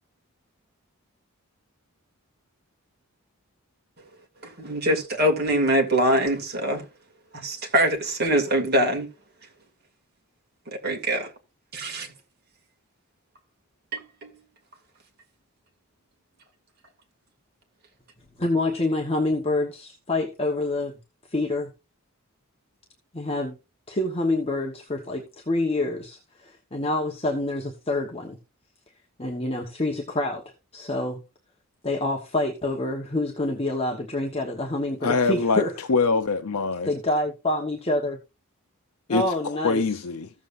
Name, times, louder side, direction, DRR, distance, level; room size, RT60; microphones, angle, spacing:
voice 1, 4.4-6.8 7.3-9.1 10.8-11.3 11.7-12.1 13.9-14.3, right 1 dB, 45° right, 2.3 m, -23 dB
voice 2, 18.4-21.0 21.3-21.7 23.1-23.5 23.9-28.4 29.2-30.4 30.7-31.2 31.8-35.7 36.8-38.2 39.1-40.0, left 2 dB, 25° left, 1.2 m, -27 dB
voice 3, 35.0-35.6 35.9-36.9 39.1-40.3, left 4 dB, 85° left, 0.7 m, -24 dB
15.0 x 7.4 x 2.6 m
head